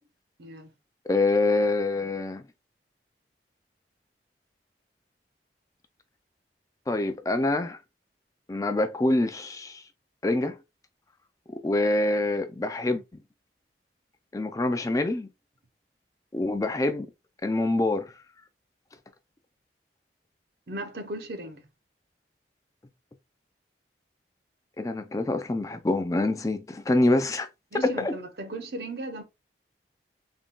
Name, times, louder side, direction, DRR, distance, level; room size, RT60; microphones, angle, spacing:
voice 1, 0.4-0.7 20.7-21.6 27.7-29.2, right 2 dB, 65° right, 0.8 m, -36 dB
voice 2, 1.1-2.4 6.9-7.8 8.5-9.8 10.2-10.6 11.6-13.0 14.3-15.3 16.3-17.1 17.4-18.1 24.8-27.5 27.8-28.1, left 2 dB, 20° left, 0.4 m, -25 dB
3.6 x 2.3 x 3.7 m
head